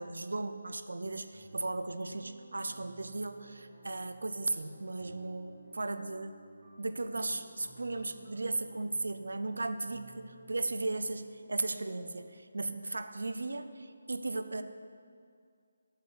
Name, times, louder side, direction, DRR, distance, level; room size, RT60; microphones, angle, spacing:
voice 1, 0.0-6.4 6.8-14.6, right 2 dB, 85° right, 10 dB, 0.5 m, -36 dB
sound 1, 1.3-12.3, right 3 dB, 35° right, 1.1 m, -56 dB
7.8 x 4.0 x 6.9 m, 2.2 s
figure-of-eight pair, 170°, 0 cm